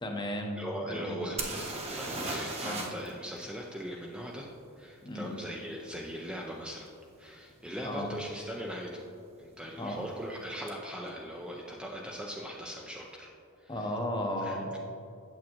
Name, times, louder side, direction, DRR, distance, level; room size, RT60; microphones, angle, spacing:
voice 1, 0.0-1.2 2.6-2.8 5.0-5.3 7.8-8.1 9.8-10.0 13.7-14.7, left 1 dB, 20° left, 2 dB, 0.8 m, -35 dB
voice 2, 0.6-4.5 4.8-6.9 7.2-9.0 9.4-13.3 13.6-13.9 14.4-14.8, equal, 5° right, -2 dB, 0.4 m, -40 dB
sound 1, 1.4-3.1 3.4-3.5 6.9-7.0 7.6-7.8 8.0-8.6 10.7-10.8 11.0-11.1, right 2 dB, 30° right, 0.9 m, -36 dB
8.7 x 7.4 x 2.9 m, 2.6 s
head